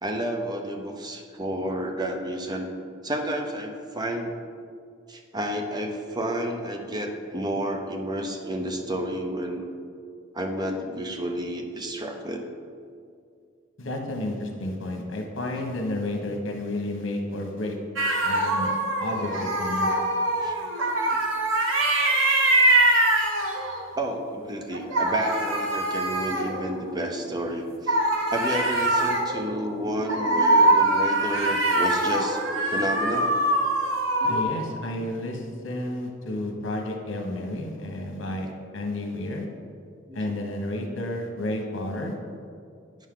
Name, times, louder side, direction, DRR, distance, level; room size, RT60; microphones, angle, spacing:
voice 1, 0.0-2.7 3.0-4.3 5.1-9.7 10.3-12.5 20.4-20.5 21.1-21.2 23.2-23.3 24.0-28.0 28.3-33.3 40.1-40.3, right 1 dB, 20° right, 3 dB, 0.6 m, -31 dB
voice 2, 13.8-17.8 18.2-18.7 19.0-19.9 34.2-39.4 40.1-42.2, left 1 dB, 70° left, 1 dB, 1.2 m, -31 dB
sound 1, 18.0-23.9 24.7-27.2 27.9-34.4, right 1 dB, 70° right, 0.9 m, -23 dB
9.2 x 6.4 x 3.8 m, 2.3 s
head